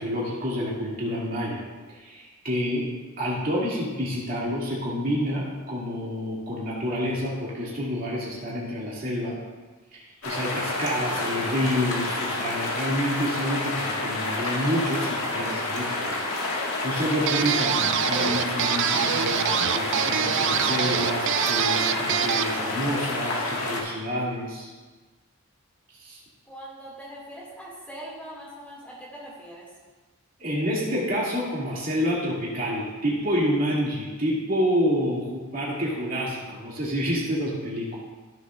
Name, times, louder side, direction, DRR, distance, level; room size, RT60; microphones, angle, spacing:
voice 1, 0.0-1.6 1.9-2.9 3.2-9.4 9.9-16.1 16.5-24.7 26.0-26.2 30.4-38.0, equal, 40° right, -6 dB, 2.6 m, -28 dB
waterflow loop, 10.2-23.8, left 2 dB, 65° left, 1.8 m, -29 dB
sound 1, 17.3-22.6, right 9 dB, 55° right, 0.4 m, -25 dB
voice 2, 26.5-29.7, right 1 dB, 5° left, -5 dB, 2.2 m, -41 dB
15.0 x 7.1 x 2.5 m, 1.3 s
head